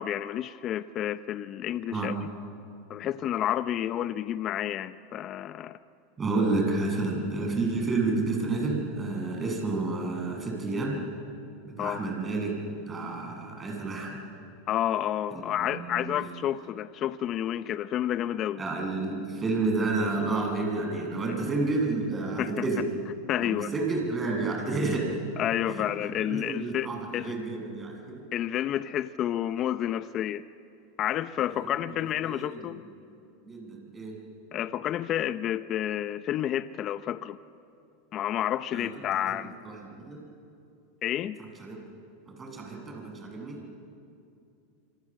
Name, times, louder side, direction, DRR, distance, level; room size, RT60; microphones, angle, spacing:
voice 1, 0.0-2.2 2.9-5.8 11.8-12.0 14.7-18.6 22.4-22.5 23.3-23.7 25.4-27.3 28.3-30.4 31.0-32.8 34.5-37.4 38.1-39.5 41.0-41.4, left 11 dB, 40° left, 13 dB, 0.7 m, -30 dB
voice 2, 6.2-11.0 11.6-14.2 15.3-16.2 18.6-22.9 23.4-25.2 25.7-25.8 26.2-28.2 31.6-32.8 33.5-34.2 38.7-38.9 39.3-39.4 39.6-40.2 41.6-41.8 42.3-43.6, right 3 dB, 20° right, 1 dB, 8.0 m, -30 dB
27.0 x 26.0 x 7.7 m, 2.5 s
hypercardioid pair, 105°, 0 cm